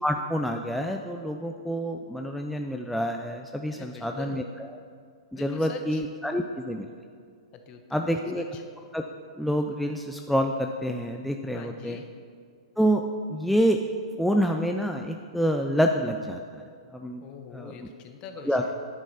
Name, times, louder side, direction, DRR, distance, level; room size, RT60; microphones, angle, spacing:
voice 1, 0.0-4.4 5.3-6.9 7.9-8.4 8.9-9.0 9.4-12.0 12.8-13.0 13.3-13.8 14.2-16.6 16.9-17.2 17.5-17.7 18.5-18.6, equal, ahead, 4 dB, 0.4 m, -27 dB
voice 2, 3.7-4.4 5.3-6.0 7.5-8.6 11.5-12.1 17.2-18.7, left 5 dB, 35° left, 6 dB, 1.1 m, -43 dB
10.0 x 8.9 x 4.2 m, 2.2 s
hypercardioid pair, 120°, 3 cm